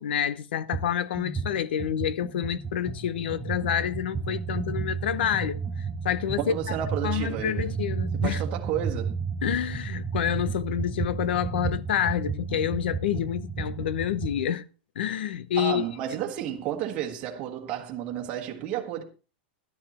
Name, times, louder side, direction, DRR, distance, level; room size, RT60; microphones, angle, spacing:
voice 1, 0.0-6.8 7.0-8.4 9.4-14.6 15.0-15.8, left 9 dB, 80° left, 0.8 m, -28 dB
sound 1, 0.7-0.9 1.1-14.4, right 5 dB, 5° right, 4.1 m, -32 dB
voice 2, 6.4-7.7 8.2-9.1 15.6-19.0, right 11 dB, 25° right, 1.4 m, -32 dB
12.0 x 9.8 x 4.2 m
supercardioid pair, 180°, 6 cm